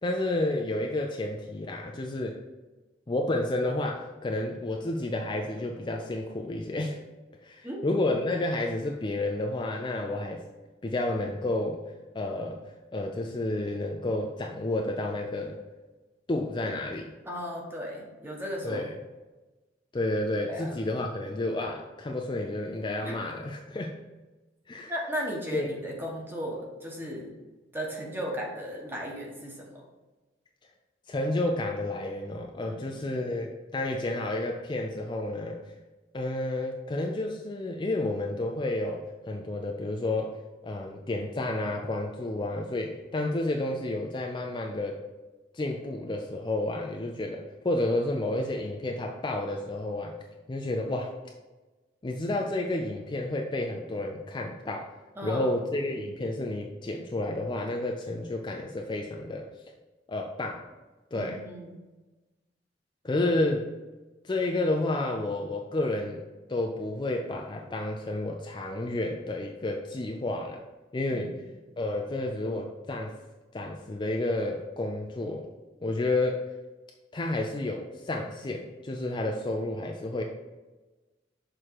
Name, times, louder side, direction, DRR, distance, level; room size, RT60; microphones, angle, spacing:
voice 1, 0.0-2.4 3.1-7.0 7.4-10.4 10.8-11.8 12.1-12.6 12.9-15.6 16.3-17.1 18.6-18.9 19.9-24.0 24.7-24.9 25.5-25.7 31.1-35.6 36.1-40.4 40.6-45.0 45.5-50.2 50.5-51.1 52.0-54.9 55.2-59.5 60.1-60.7 61.1-61.4 63.0-63.7 64.2-66.2 66.5-70.6 70.9-71.3 71.8-73.2 73.5-75.5 75.8-76.4 77.1-80.2, left 2 dB, 25° left, 1 dB, 0.4 m, -30 dB
voice 2, 17.3-18.8 20.5-20.8 23.0-23.2 24.9-27.4 27.7-29.8 32.7-33.0 55.1-55.6 61.1-61.8 71.1-71.3, equal, 10° right, -2 dB, 1.3 m, -36 dB
6.3 x 3.7 x 4.6 m, 1.2 s
head